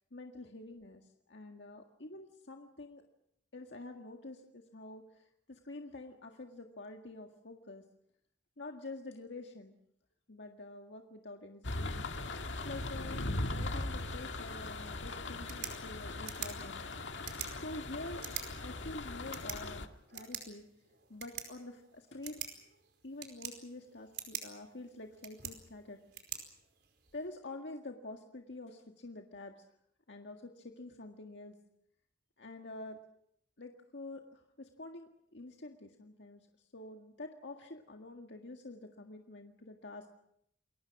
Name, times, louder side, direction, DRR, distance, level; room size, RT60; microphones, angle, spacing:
voice 1, 0.1-3.0 3.5-7.8 8.6-9.7 10.3-12.0 12.6-16.8 17.4-20.6 21.1-22.4 23.0-26.0 27.1-29.6 30.1-31.6 32.4-33.0 33.6-36.4 36.7-40.1, left 2 dB, 70° left, 3 dB, 1.9 m, -47 dB
sound 1, 11.6-19.9, left 2 dB, 90° left, 1.9 m, -39 dB
sound 2, 15.3-27.3, right 9 dB, 65° right, 4.9 m, -47 dB
29.0 x 22.0 x 6.1 m, 0.72 s
head